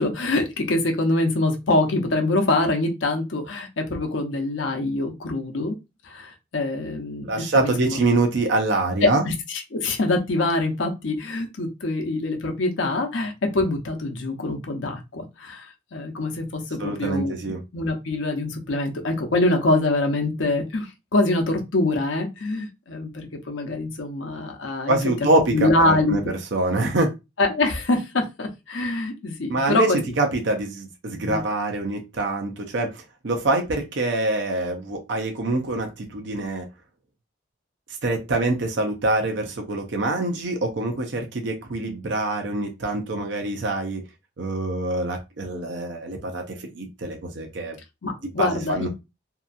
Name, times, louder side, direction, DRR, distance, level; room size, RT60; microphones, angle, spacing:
voice 1, 0.0-5.8 6.0-8.0 9.0-17.4 17.7-26.2 27.4-30.0 31.3-31.4 48.0-48.9, left 2 dB, 75° left, 0.7 m, -24 dB
voice 2, 7.3-9.2 16.8-17.6 24.9-27.1 29.5-36.7 38.0-44.0 44.4-47.8 48.4-48.9, right 2 dB, 60° right, 0.5 m, -25 dB
2.8 x 2.3 x 2.5 m
head